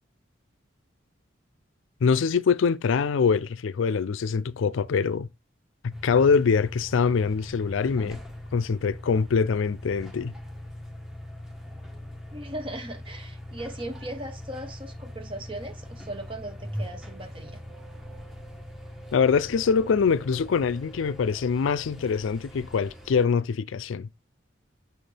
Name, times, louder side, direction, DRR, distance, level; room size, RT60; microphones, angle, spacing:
voice 1, 2.0-5.3 5.8-8.2 8.5-10.3 19.1-24.1, left 5 dB, 80° left, 0.4 m, -24 dB
sound 1, 5.9-23.2, left 1 dB, ahead, 1.2 m, -41 dB
voice 2, 12.3-17.6, right 1 dB, 25° right, 1.1 m, -38 dB
6.7 x 4.1 x 3.4 m
head